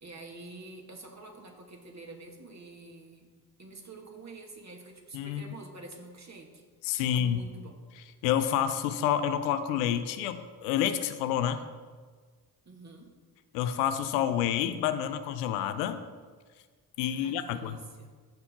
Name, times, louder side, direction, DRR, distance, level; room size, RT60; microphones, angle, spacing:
voice 1, 0.0-3.3 3.6-6.6 7.1-7.8 12.7-13.1 17.1-18.1, right 2 dB, 35° right, 1 dB, 2.4 m, -47 dB
voice 2, 6.8-7.4 8.2-11.6 13.5-16.0 17.0-17.8, left 10 dB, 80° left, 10 dB, 0.7 m, -28 dB
15.5 x 5.8 x 3.8 m, 1.5 s
hypercardioid pair, 40°, 48 cm